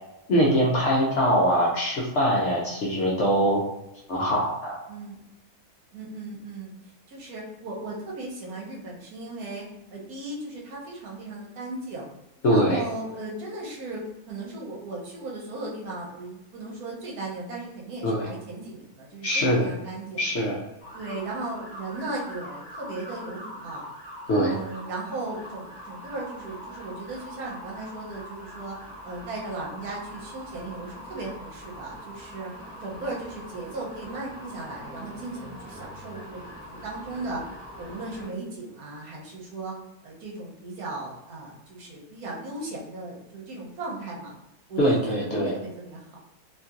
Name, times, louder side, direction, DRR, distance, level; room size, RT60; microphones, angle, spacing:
voice 1, 0.3-3.6 4.1-4.8 12.4-12.8 18.0-18.3 19.2-19.7 20.2-20.6 24.3-24.5 44.8-45.5, equal, 60° left, -4 dB, 0.8 m, -22 dB
voice 2, 4.9-5.2 5.9-6.7 7.1-12.1 12.5-20.2 20.9-23.9 24.5-28.8 29.0-32.5 32.8-37.5 37.7-39.7 40.0-44.3 44.7-46.2, right 2 dB, 75° right, -3 dB, 1.2 m, -36 dB
sound 1, 20.8-38.3, equal, 5° right, 1.0 m, -43 dB
2.9 x 2.7 x 2.4 m, 0.91 s
omnidirectional pair, 1.7 m